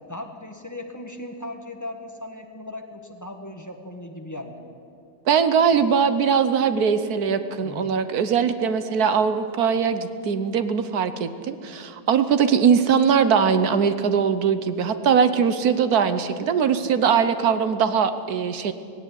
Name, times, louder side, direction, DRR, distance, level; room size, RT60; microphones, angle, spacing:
voice 1, 0.1-4.8 7.6-8.0, left 1 dB, 10° left, 4 dB, 1.3 m, -37 dB
voice 2, 5.3-18.7, right 7 dB, 55° right, 11 dB, 1.3 m, -21 dB
17.0 x 17.0 x 9.9 m, 2.4 s
omnidirectional pair, 2.2 m